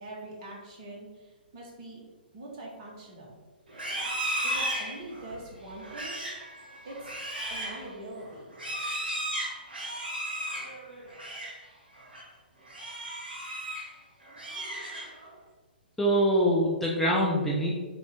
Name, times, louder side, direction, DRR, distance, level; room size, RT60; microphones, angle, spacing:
voice 1, 0.0-2.0 2.3-3.4 4.4-6.2 6.8-7.1 7.5-8.5, right 1 dB, 40° right, -2 dB, 1.2 m, -43 dB
Livestock farm animals working animals, 3.7-11.6 12.0-12.3 12.7-13.9 14.3-15.3, right 1 dB, 65° right, 1.3 m, -35 dB
voice 2, 16.0-17.7, equal, 5° left, -5 dB, 0.5 m, -24 dB
3.1 x 3.0 x 3.9 m, 1.3 s
figure-of-eight pair, 120°, 6 cm